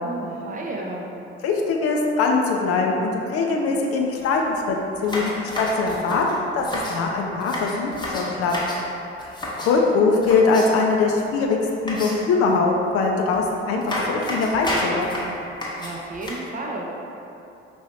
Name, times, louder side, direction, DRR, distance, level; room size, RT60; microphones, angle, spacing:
voice 1, 0.0-1.1 15.7-16.9, right 2 dB, 25° right, -1 dB, 0.5 m, -32 dB
voice 2, 1.4-5.3 5.6-8.5 9.2-9.3 9.6-15.1, left 4 dB, 45° left, 1 dB, 0.5 m, -22 dB
sound 1, 4.1-4.2 4.5-4.6 5.0-7.0 7.4-8.8 9.2-9.8 10.2-10.9 11.9-12.4 13.3-13.4 13.8-16.3, left 1 dB, 15° left, 0.9 m, -30 dB
4.8 x 3.0 x 2.7 m, 2.8 s
figure-of-eight pair, 45°, 32 cm